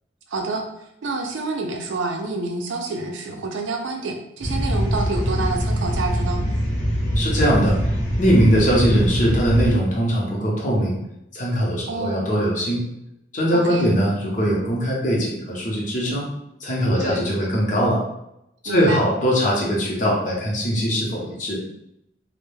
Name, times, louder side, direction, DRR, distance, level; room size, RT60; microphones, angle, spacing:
voice 1, 0.3-0.6 1.0-6.4 11.9-12.3 13.5-13.9 17.0-17.3 18.7-19.0, right 3 dB, 80° right, 3 dB, 0.4 m, -28 dB
sound 1, 4.4-9.7, equal, 80° left, 0.8 m, -23 dB
voice 2, 7.2-7.8 8.2-11.0 11.3-12.8 13.3-16.3 16.6-18.0 18.6-21.6, equal, 40° left, -3 dB, 0.7 m, -21 dB
2.2 x 2.0 x 3.1 m, 0.81 s
head